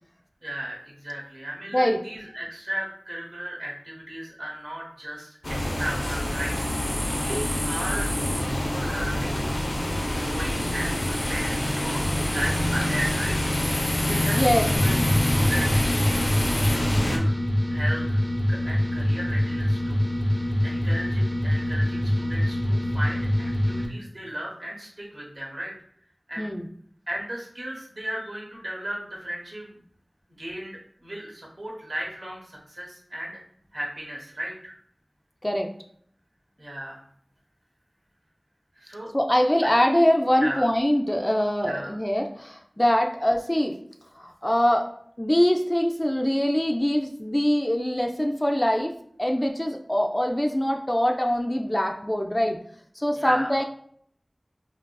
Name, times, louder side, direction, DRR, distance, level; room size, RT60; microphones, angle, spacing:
voice 1, 0.4-9.4 10.1-13.4 14.0-14.4 14.8-16.0 16.4-17.3 17.7-18.2 18.5-20.1 20.4-25.7 26.3-26.5 27.1-29.8 30.4-33.4 33.7-34.7 36.6-37.0 38.7-39.1 39.6-39.7 40.4-40.6 41.6-41.9 53.1-53.5, right 1 dB, 70° right, -2 dB, 0.9 m, -35 dB
sound 1, 5.4-17.2, left 1 dB, 80° left, 0.6 m, -26 dB
voice 2, 14.3-14.7 26.4-26.6 35.4-35.7 39.1-43.7 44.2-44.9 45.2-48.9 49.2-52.6 53.0-53.6, equal, 20° left, 3 dB, 0.3 m, -23 dB
sound 2, 14.8-23.9, left 1 dB, 25° right, 0.6 m, -25 dB
3.3 x 2.4 x 2.2 m, 0.63 s
wide cardioid pair, 55°, 0 cm